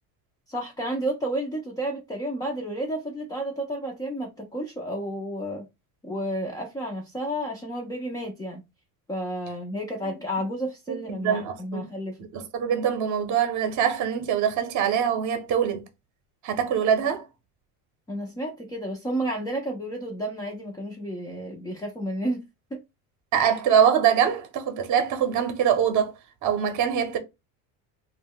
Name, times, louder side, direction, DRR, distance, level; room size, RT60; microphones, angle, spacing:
voice 1, 0.5-5.7 6.0-8.6 9.1-12.2 18.1-22.4 22.7-22.8, right 1 dB, 10° left, 0.3 m, -31 dB
voice 2, 10.9-11.8 12.3-15.9 16.4-17.2 23.3-26.1 26.4-27.2, right 8 dB, 40° right, 0.7 m, -23 dB
2.1 x 2.1 x 3.5 m
supercardioid pair, 110°, 45 cm